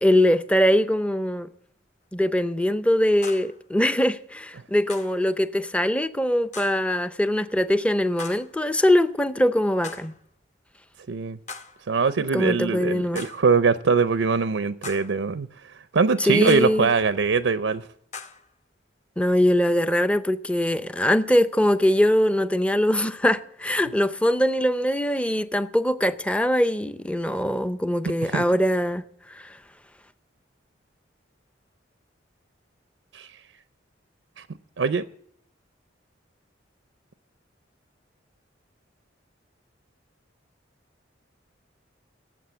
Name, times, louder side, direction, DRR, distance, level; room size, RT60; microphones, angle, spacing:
voice 1, 0.0-1.5 2.1-10.1 12.3-13.3 16.2-16.9 19.2-29.6, equal, 5° left, 0.5 m, -22 dB
sound 1, 3.2-3.6 4.9-5.2 6.5-6.9 8.2-8.6 9.8-10.2 11.5-11.9 13.2-13.5 14.8-15.2 16.5-16.9 18.1-18.5, left 4 dB, 40° left, 1.0 m, -40 dB
voice 2, 11.1-11.4 11.9-17.9 28.2-28.4 33.1-33.3 34.4-34.5 34.8-35.0, right 5 dB, 80° right, 0.5 m, -22 dB
17.0 x 7.5 x 7.7 m
head